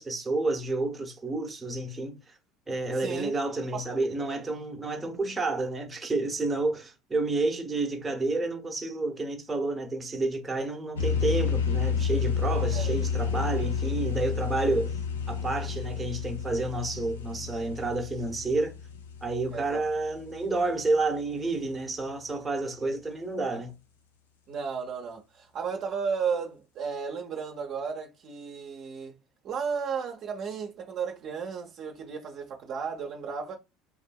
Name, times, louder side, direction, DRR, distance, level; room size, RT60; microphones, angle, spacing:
voice 1, 0.0-2.4 2.7-15.0 15.3-18.7 19.2-23.7, right 2 dB, 20° right, 0.8 m, -30 dB
voice 2, 2.9-3.3 3.7-3.8 4.2-4.4 12.7-12.9 19.5-19.8 24.5-29.1 29.4-33.6, right 6 dB, 50° right, 0.6 m, -34 dB
sound 1, 10.9-20.4, left 6 dB, 90° left, 0.4 m, -30 dB
2.6 x 2.4 x 2.2 m
hypercardioid pair, 75°, 0 cm